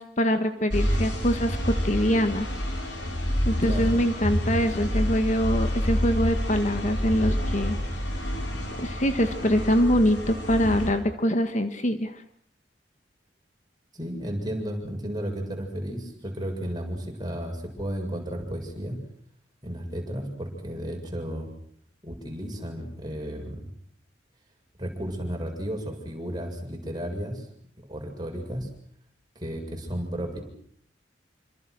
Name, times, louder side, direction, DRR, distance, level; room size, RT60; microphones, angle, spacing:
voice 1, 0.0-2.5 3.5-7.8 8.8-12.2, equal, 40° left, 8 dB, 1.8 m, -24 dB
sound 1, 0.7-10.9, equal, 75° left, 7.9 m, -28 dB
voice 2, 3.6-3.9 13.9-19.0 19.6-21.5 22.0-23.6 24.8-27.5 27.9-28.7 29.4-30.4, equal, 25° right, 1 dB, 7.6 m, -33 dB
28.5 x 26.0 x 6.4 m, 0.64 s
head